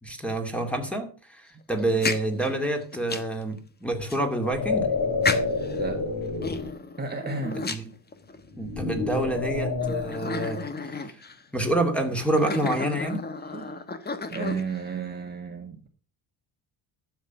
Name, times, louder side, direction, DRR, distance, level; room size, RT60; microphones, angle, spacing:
voice 1, 0.0-4.9 7.6-7.9 8.6-10.6 11.0-11.2 11.5-13.3, right 1 dB, ahead, 5 dB, 2.4 m, -28 dB
sound 1, 1.8-3.4 4.1-4.2 5.2-5.8 6.4-8.5 9.1-9.2 9.8-11.4 12.1-14.9, left 3 dB, 20° left, 1.2 m, -32 dB
sound 2, 4.3-6.7 8.5-10.1, left 4 dB, 40° left, 3.2 m, -28 dB
voice 2, 5.7-6.0 7.0-7.6 13.5-13.7 14.3-15.9, right 5 dB, 20° right, 3 dB, 1.7 m, -32 dB
12.0 x 7.6 x 5.9 m, 0.36 s
cardioid pair, 130°, 47 cm